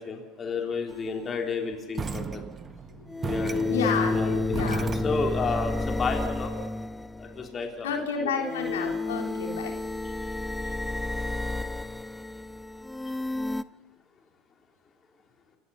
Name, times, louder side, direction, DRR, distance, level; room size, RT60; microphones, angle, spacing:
voice 1, 0.0-2.4 3.2-3.8 4.1-6.5 7.2-7.9 8.2-8.3 13.0-13.1, left 4 dB, 30° left, 3 dB, 3.5 m, -32 dB
sound 1, 0.9-1.0 3.1-7.5 8.4-13.6, left 2 dB, 10° left, 0.6 m, -31 dB
sound 2, 2.0-5.5, right 5 dB, 25° right, 1.4 m, -35 dB
voice 2, 2.9-4.9 7.8-9.7, left 6 dB, 80° left, 2 dB, 3.8 m, -31 dB
28.5 x 16.5 x 5.7 m, 1.2 s
hypercardioid pair, 80°, 0 cm